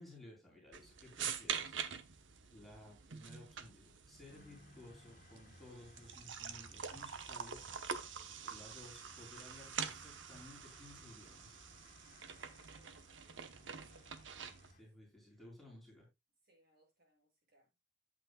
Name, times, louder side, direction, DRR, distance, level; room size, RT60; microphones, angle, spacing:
voice 1, 0.0-1.7 2.5-7.9 8.4-11.6 14.6-16.1, left 1 dB, ahead, 4.1 m, -57 dB
sound 1, 0.7-14.7, right 7 dB, 70° right, 1.0 m, -46 dB
sound 2, 4.3-14.8, left 2 dB, 50° left, 1.9 m, -63 dB
voice 2, 12.7-14.2 14.8-14.9 16.4-17.7, right 2 dB, 55° right, 6.5 m, -74 dB
11.5 x 8.2 x 2.3 m
head